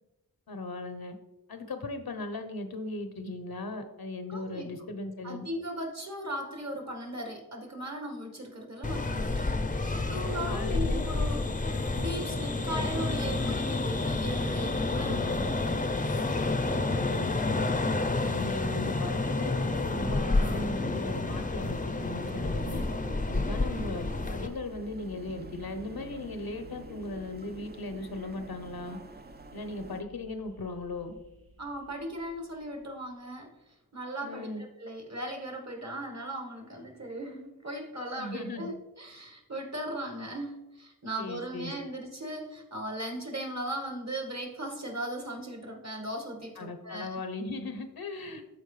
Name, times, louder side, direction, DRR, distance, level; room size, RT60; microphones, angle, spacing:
voice 1, 0.5-1.1 1.5-5.4 10.4-11.1 14.9-15.5 16.8-17.7 18.2-22.9 23.3-29.0 29.5-31.2 34.2-34.6 38.2-38.7 41.2-41.7 46.6-48.4, left 2 dB, 85° left, 8 dB, 0.9 m, -38 dB
voice 2, 4.3-4.7 5.2-15.3 31.6-33.5 33.9-47.2, right 1 dB, 50° right, 3 dB, 1.7 m, -38 dB
sound 1, 8.8-24.5, left 2 dB, 25° left, 0.6 m, -29 dB
sound 2, 22.0-30.0, right 3 dB, 30° right, 0.5 m, -47 dB
sound 3, 24.0-33.3, equal, 75° right, 1.3 m, -54 dB
12.5 x 4.4 x 3.3 m, 0.97 s
wide cardioid pair, 50°, 36 cm